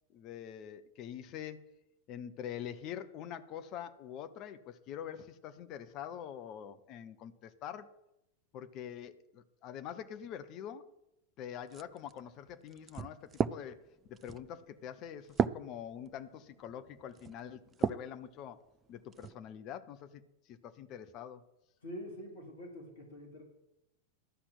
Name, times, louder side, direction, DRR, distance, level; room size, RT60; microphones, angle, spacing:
voice 1, 0.1-1.6 2.1-7.9 8.5-10.9 11.4-13.8 14.1-18.6 18.9-21.4, left 9 dB, 40° left, 11 dB, 0.8 m, -45 dB
sound 1, 11.7-18.2 18.7-19.4, right 7 dB, 25° right, 0.4 m, -37 dB
voice 2, 21.8-23.4, equal, 65° left, 0 dB, 3.3 m, -45 dB
12.5 x 5.9 x 8.0 m, 0.88 s
figure-of-eight pair, 90°, 0 cm